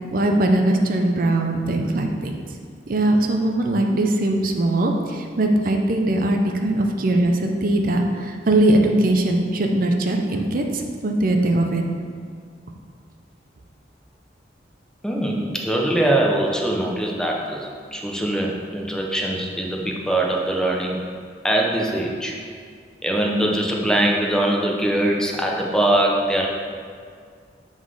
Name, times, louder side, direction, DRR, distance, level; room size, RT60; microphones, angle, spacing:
voice 1, 0.1-2.3 2.9-11.9, right 1 dB, 50° right, 3 dB, 0.6 m, -20 dB
voice 2, 15.0-21.0 21.4-22.4 23.0-26.5, right 1 dB, 5° left, -1 dB, 0.6 m, -22 dB
7.3 x 4.0 x 4.8 m, 2.1 s
head